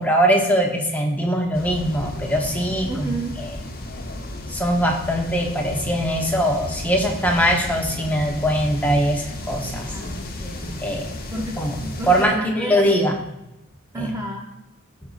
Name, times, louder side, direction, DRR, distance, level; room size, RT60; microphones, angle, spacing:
voice 1, 0.0-3.5 4.5-9.9 10.8-11.1 11.6-11.8 12.1-13.1 14.0-14.1, equal, 5° left, 1 dB, 0.9 m, -21 dB
sound 1, 1.5-12.3, left 1 dB, 45° left, 1.1 m, -33 dB
voice 2, 2.8-3.4 9.9-10.8 11.3-12.8 13.9-14.5, right 2 dB, 15° right, 0 dB, 0.6 m, -31 dB
13.5 x 5.2 x 2.4 m, 0.90 s
head